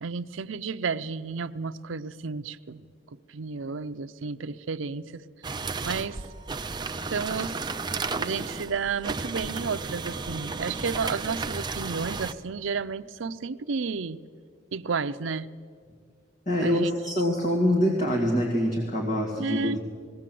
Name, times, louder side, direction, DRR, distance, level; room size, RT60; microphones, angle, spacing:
voice 1, 0.0-2.9 3.3-5.2 5.8-6.2 7.1-7.6 8.2-14.2 14.7-15.5 16.6-16.9 19.4-19.8, right 5 dB, 75° right, 10 dB, 0.6 m, -32 dB
sound 1, 5.4-12.3, right 4 dB, 20° right, 0.6 m, -33 dB
voice 2, 16.5-19.8, equal, 40° left, -1 dB, 2.2 m, -25 dB
20.0 x 17.5 x 7.7 m, 2.1 s
head